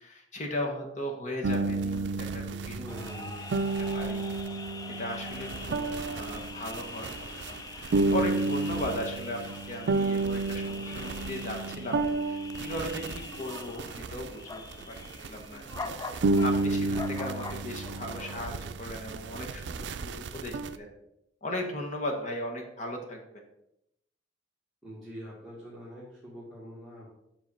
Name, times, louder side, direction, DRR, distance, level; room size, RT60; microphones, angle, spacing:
voice 1, 0.0-2.8 3.9-4.2 5.0-7.1 7.3-9.4 9.7-14.6 14.9-15.0 15.3-20.9 21.4-23.2, left 1 dB, 40° left, 2 dB, 1.1 m, -37 dB
sound 1, 1.4-14.3 14.7-15.4 15.7-20.8, right 3 dB, 70° right, 0.4 m, -31 dB
voice 2, 2.6-3.7 24.8-27.1, equal, ahead, -9 dB, 1.7 m, -44 dB
sound 2, 2.9-18.6, left 3 dB, 20° left, 0.4 m, -44 dB
5.8 x 5.1 x 5.4 m, 0.81 s
head